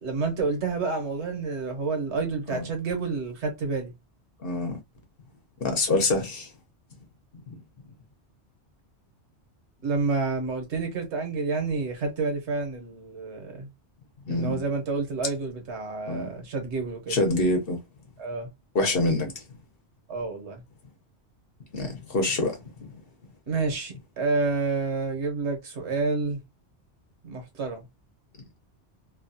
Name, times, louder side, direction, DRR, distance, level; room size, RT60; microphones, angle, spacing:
voice 1, 0.0-3.9 9.8-13.7 14.3-17.2 18.2-18.5 20.1-20.6 23.5-26.4 27.2-27.9, right 4 dB, 70° right, 1.2 m, -29 dB
voice 2, 4.4-4.8 5.6-6.5 7.5-7.6 14.3-14.6 16.1-16.3 17.1-17.8 18.7-19.4 21.7-22.9, left 2 dB, 55° left, 1.0 m, -26 dB
2.8 x 2.3 x 2.7 m
omnidirectional pair, 1.2 m